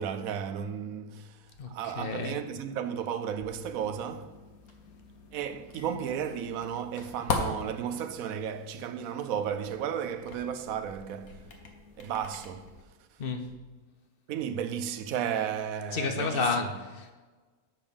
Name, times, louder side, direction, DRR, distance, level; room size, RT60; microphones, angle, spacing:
voice 1, 0.0-4.4 5.3-11.5 12.0-12.7 14.3-16.7, right 8 dB, 80° right, 1.0 m, -34 dB
voice 2, 1.6-2.4 13.2-13.4 15.9-17.1, left 4 dB, 45° left, 1.0 m, -31 dB
sound 1, 3.6-12.8, left 3 dB, 90° left, 1.5 m, -40 dB
10.5 x 3.6 x 7.0 m
omnidirectional pair, 1.5 m